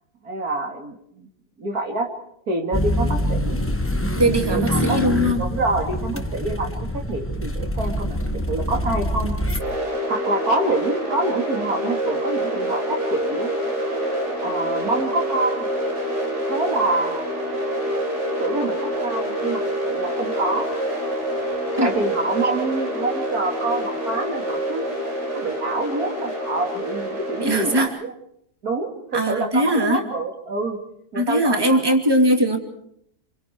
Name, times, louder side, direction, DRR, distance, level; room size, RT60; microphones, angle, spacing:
voice 1, 0.2-1.3 1.6-2.1 2.5-3.6 4.2-5.0 5.3-8.2 8.5-9.3 10.1-13.5 14.4-15.7 16.5-17.3 18.3-20.7 21.8-24.9 25.3-28.1 28.6-30.8 31.1-31.9, right 2 dB, 70° right, 3 dB, 3.4 m, -26 dB
sound 1, 2.7-9.6, left 1 dB, 10° left, 0.9 m, -25 dB
voice 2, 4.1-5.4 21.8-21.9 27.4-27.9 29.1-30.0 31.1-32.6, right 1 dB, 15° right, 3 dB, 2.7 m, -20 dB
sound 2, 9.6-27.8, equal, 45° right, 5.1 m, -26 dB
29.0 x 24.0 x 4.7 m, 0.70 s
omnidirectional pair, 1.6 m